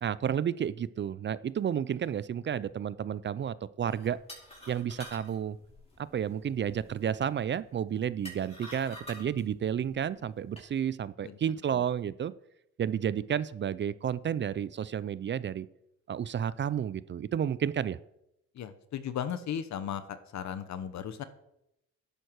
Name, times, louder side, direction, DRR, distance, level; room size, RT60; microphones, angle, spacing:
voice 1, 0.0-4.2 4.7-5.6 6.0-12.3 12.8-15.7 16.1-18.0, right 9 dB, 40° right, 17 dB, 0.4 m, -31 dB
sound 1, 3.9-10.7, left 1 dB, 20° left, 5.0 m, -50 dB
voice 2, 18.5-21.2, left 9 dB, 65° left, 12 dB, 1.1 m, -36 dB
11.0 x 9.1 x 4.7 m, 0.82 s
cardioid pair, 90°, 30 cm